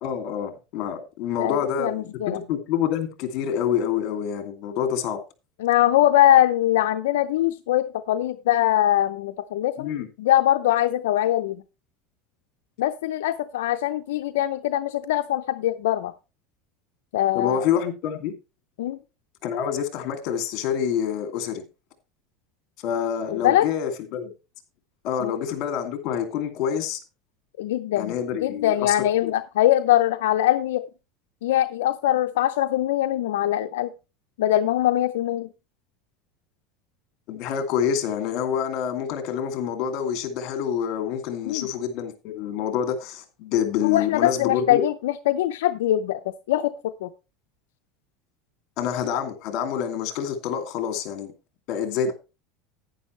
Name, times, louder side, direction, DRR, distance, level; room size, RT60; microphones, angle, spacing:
voice 1, 0.0-5.2 9.8-10.1 17.3-18.3 19.4-21.6 22.8-24.3 25.0-27.0 28.0-28.9 29.2-29.3 37.3-44.8 48.8-51.3 51.7-52.1, left 8 dB, 60° left, 2.6 m, -27 dB
voice 2, 1.4-2.4 5.6-9.9 10.2-11.6 12.8-16.1 17.1-17.7 18.8-19.0 23.3-23.7 25.2-25.4 27.6-28.1 28.4-30.8 31.4-33.9 34.4-35.5 41.4-41.7 43.8-46.2 46.5-46.7 47.0-47.1, left 13 dB, 90° left, 0.5 m, -22 dB
11.0 x 9.7 x 3.2 m
supercardioid pair, 120°, 0 cm